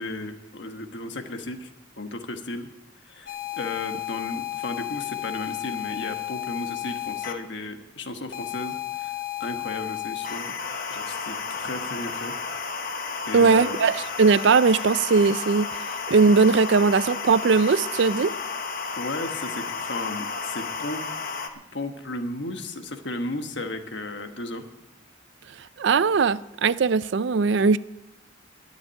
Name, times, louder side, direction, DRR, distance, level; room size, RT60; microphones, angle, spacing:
voice 1, 0.0-2.7 3.0-10.5 10.9-12.3 13.2-13.9 19.0-21.0 21.7-24.6, left 2 dB, 60° left, 1.4 m, -34 dB
sound 1, 3.3-7.3 8.3-21.5, left 6 dB, 45° left, 1.1 m, -32 dB
voice 2, 13.3-15.7 16.1-18.3 25.8-27.8, right 4 dB, 65° right, 0.4 m, -19 dB
12.5 x 7.5 x 10.0 m
head